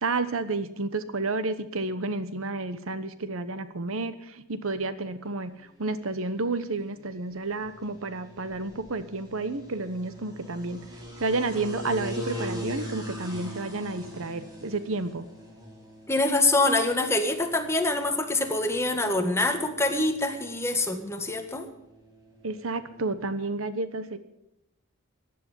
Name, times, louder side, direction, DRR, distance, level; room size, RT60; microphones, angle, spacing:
voice 1, 0.0-5.5 5.8-10.8 11.2-15.2 22.4-24.2, right 3 dB, 70° right, 13 dB, 1.1 m, -31 dB
sound 1, 5.3-23.3, left 1 dB, 20° right, 4.5 m, -43 dB
voice 2, 16.1-21.7, left 2 dB, 15° left, 5 dB, 1.8 m, -25 dB
15.5 x 10.5 x 7.3 m, 0.84 s
head